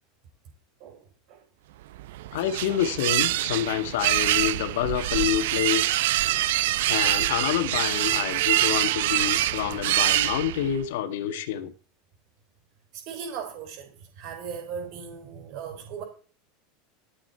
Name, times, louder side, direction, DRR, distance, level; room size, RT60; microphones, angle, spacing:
sound 1, 1.9-10.8, right 15 dB, 75° right, 0.7 m, -25 dB
voice 1, 2.3-5.9 6.9-11.7, left 11 dB, 75° left, 1.8 m, -27 dB
voice 2, 12.9-16.0, right 7 dB, 50° right, 6.1 m, -38 dB
14.5 x 8.7 x 4.7 m
supercardioid pair, 145°, 0 cm